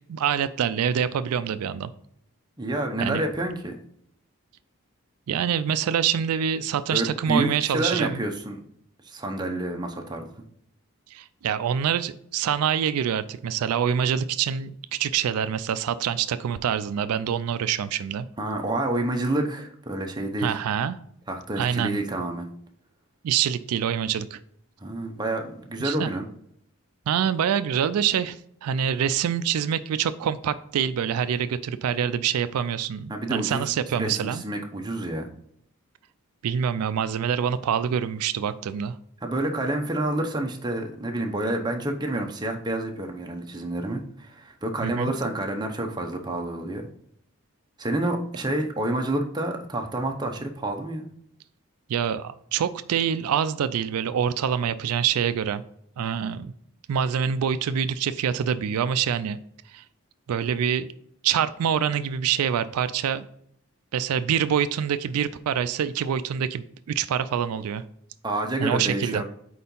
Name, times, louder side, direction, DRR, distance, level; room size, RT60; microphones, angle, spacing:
voice 1, 0.1-1.9 3.0-3.2 5.3-8.2 11.1-18.3 20.4-21.0 21.6-22.0 23.2-24.4 25.8-26.1 27.1-34.4 36.4-39.0 44.8-45.1 51.9-55.6 56.0-56.5 56.9-59.4 59.7-59.8 60.3-60.9 61.2-63.3 63.9-67.8 68.6-69.2, right 8 dB, 85° right, 13 dB, 0.3 m, -25 dB
voice 2, 2.6-3.8 6.9-8.6 9.0-10.3 18.4-20.6 21.3-22.5 24.8-26.3 33.1-35.3 39.2-46.9 47.8-51.1 68.2-69.2, right 1 dB, 20° right, 2 dB, 0.7 m, -28 dB
4.6 x 4.3 x 5.3 m, 0.69 s
head